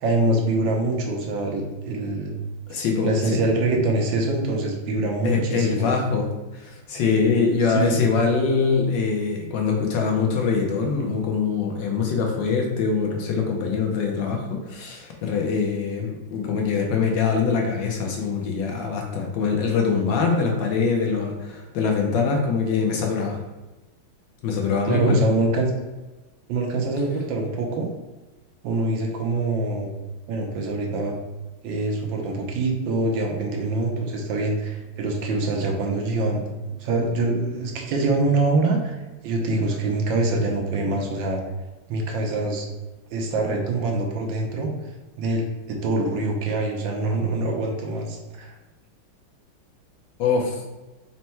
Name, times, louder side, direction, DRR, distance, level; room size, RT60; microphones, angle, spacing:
voice 1, 0.0-2.3 3.0-5.9 7.7-8.0 24.8-25.7 26.5-27.9 28.6-29.9 30.3-31.2 31.6-36.4 36.7-39.0 39.2-41.4 41.9-42.7 43.1-44.7 45.2-45.4 45.7-48.5, right 2 dB, 75° right, 1 dB, 1.3 m, -24 dB
voice 2, 2.7-3.1 5.2-6.3 6.5-23.4 24.4-25.2 50.2-50.6, left 5 dB, 70° left, 1 dB, 1.2 m, -23 dB
4.3 x 2.2 x 4.2 m, 1.1 s
omnidirectional pair, 2.2 m